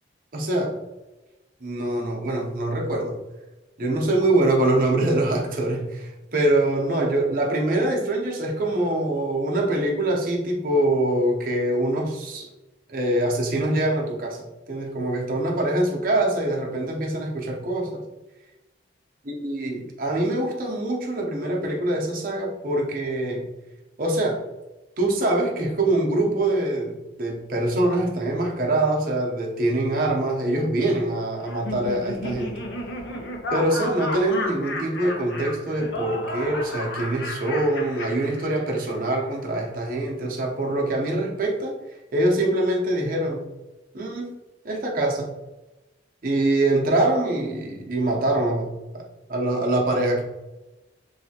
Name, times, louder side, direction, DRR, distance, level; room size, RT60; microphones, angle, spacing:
voice 1, 0.3-0.8 1.6-3.2 3.8-12.5 12.9-18.0 19.3-23.5 24.0-24.4 25.0-32.6 33.5-41.8 42.1-43.5 43.9-44.3 44.6-45.3 46.2-50.2, right 1 dB, 50° right, -1 dB, 0.7 m, -24 dB
Laughter, 31.4-38.9, left 2 dB, 70° left, 0.6 m, -33 dB
3.1 x 2.6 x 2.8 m, 1.0 s
head